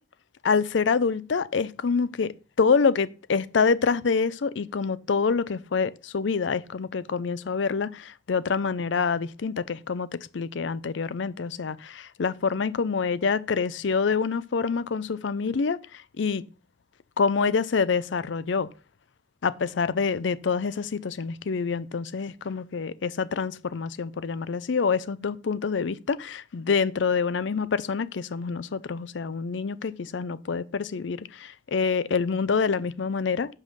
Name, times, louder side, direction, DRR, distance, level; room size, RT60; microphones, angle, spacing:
voice 1, 0.4-16.4 17.2-18.7 19.4-33.5, left 5 dB, 75° left, 0.5 m, -26 dB
5.5 x 5.4 x 6.2 m
head